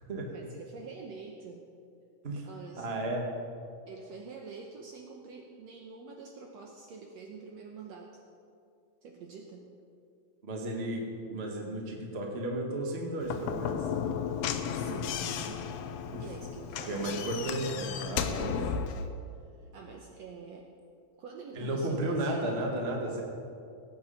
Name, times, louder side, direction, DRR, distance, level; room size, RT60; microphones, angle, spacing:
voice 1, 0.3-1.7 2.5-2.9 3.9-8.2 9.0-9.7 14.7-15.7 16.2-17.3 18.3-19.0 19.6-20.7 21.2-22.6, right 5 dB, 65° right, 1 dB, 1.8 m, -46 dB
voice 2, 2.8-3.3 10.4-13.9 16.1-16.2 16.9-18.5 21.5-23.2, right 1 dB, 25° right, 0 dB, 1.4 m, -33 dB
Slam / Knock, 13.2-19.1, left 7 dB, 80° left, 1.5 m, -34 dB
18.5 x 8.5 x 5.6 m, 2.4 s
omnidirectional pair, 3.7 m